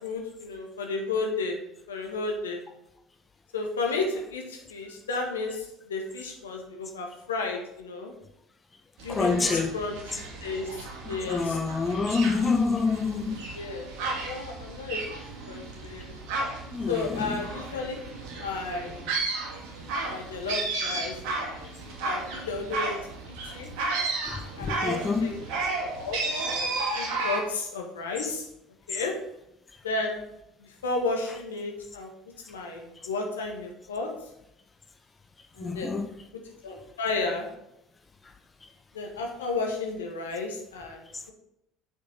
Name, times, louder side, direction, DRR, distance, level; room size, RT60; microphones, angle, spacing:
voice 1, 0.0-1.6 1.9-2.6 3.5-8.1 9.0-10.0 10.4-10.7 11.1-11.6 13.5-15.0 15.5-16.2 16.9-18.0 18.4-19.0 20.1-23.0 23.3-23.7 24.6-25.3 25.9-26.2 26.6-28.5 28.9-29.2 29.8-30.2 30.6-32.1 32.5-34.1 35.6-35.9 36.6-37.5 38.9-41.3, left 3 dB, 75° left, 2 dB, 1.8 m, -33 dB
sound 1, 9.0-27.4, right 3 dB, 60° right, 2.4 m, -33 dB
voice 2, 9.1-9.7 11.2-13.4 16.7-17.4 24.3-25.3 35.6-36.1, left 4 dB, 25° left, 4 dB, 1.6 m, -27 dB
8.3 x 7.5 x 4.1 m, 0.82 s
figure-of-eight pair, 60°, 0 cm